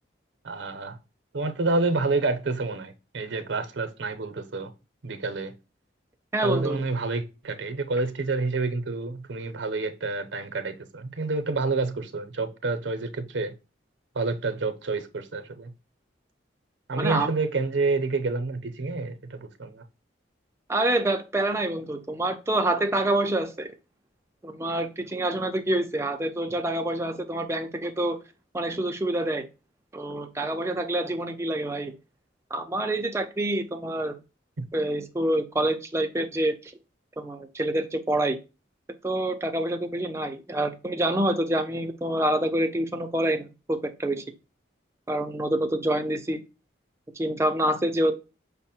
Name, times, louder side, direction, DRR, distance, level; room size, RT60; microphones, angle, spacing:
voice 1, 0.4-1.0 1.3-4.7 5.0-5.5 6.4-13.5 14.1-15.7 16.9-19.8 34.6-34.7, right 3 dB, 70° right, 0.6 m, -28 dB
voice 2, 6.3-6.8 17.0-17.3 20.7-23.7 24.4-28.2 28.5-29.5 29.9-32.0 32.5-34.2 34.7-36.7 37.2-38.4 39.0-44.2 45.1-46.4 47.2-48.1, right 1 dB, 15° right, 0.4 m, -27 dB
5.4 x 2.1 x 4.1 m
head